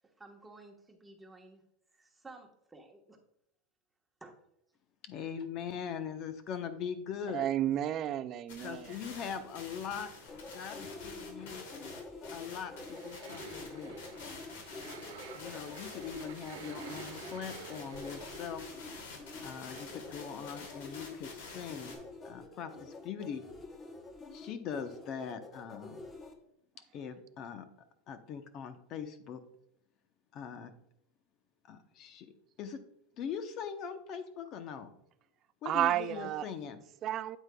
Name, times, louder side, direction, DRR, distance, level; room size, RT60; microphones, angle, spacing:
voice 1, 0.2-1.6 1.9-3.2 4.2-4.3, right 2 dB, 10° right, 1.2 m, -53 dB
voice 2, 5.0-7.4 8.6-10.1 10.5-11.7 12.3-13.9 15.3-18.6 19.4-21.9 22.2-23.4 24.3-26.1 26.9-27.7 28.1-29.4 30.3-30.7 31.6-32.3 32.6-32.8 33.2-34.9 35.6-36.8, left 7 dB, 40° left, 0.8 m, -41 dB
voice 3, 7.3-9.0 35.7-36.5 37.0-37.4, right 12 dB, 35° right, 0.4 m, -32 dB
sound 1, 8.5-22.0, left 4 dB, 80° left, 2.6 m, -49 dB
sound 2, 10.3-26.3, left 2 dB, 20° left, 1.0 m, -47 dB
sound 3, 12.8-19.4 19.8-19.9 20.2-20.3 20.6-20.7 20.9-21.0, right 6 dB, 85° right, 1.3 m, -51 dB
8.6 x 8.2 x 2.3 m
supercardioid pair, 140°, 0 cm